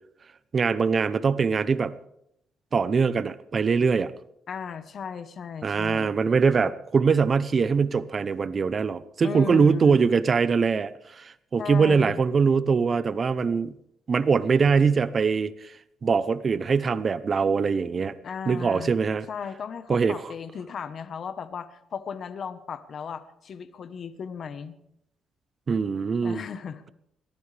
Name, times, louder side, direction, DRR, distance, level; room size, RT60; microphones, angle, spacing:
voice 1, 0.5-1.9 2.7-4.1 5.6-13.7 14.1-15.7 16.0-18.1 18.5-19.3 19.9-20.2 25.7-26.4, right 5 dB, 40° right, 15 dB, 0.7 m, -22 dB
voice 2, 4.5-6.2 9.2-10.0 11.6-12.2 18.2-18.9 19.3-24.8 26.2-26.8, left 6 dB, 50° left, 12 dB, 1.1 m, -36 dB
22.0 x 15.0 x 3.4 m, 0.76 s
cardioid pair, 100°, 0 cm